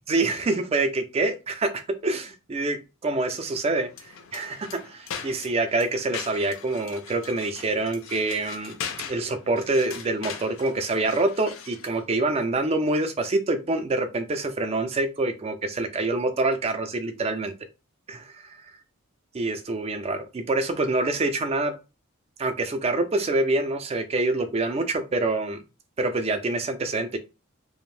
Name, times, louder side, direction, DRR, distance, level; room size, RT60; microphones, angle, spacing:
voice 1, 0.1-8.8 9.1-17.5 18.1-18.6 19.3-21.7 22.4-25.6 26.0-27.2, right 2 dB, 25° right, 8 dB, 0.3 m, -26 dB
sound 1, 3.9-12.0, left 7 dB, 60° left, 0.4 m, -40 dB
2.5 x 2.0 x 3.1 m, 0.29 s
head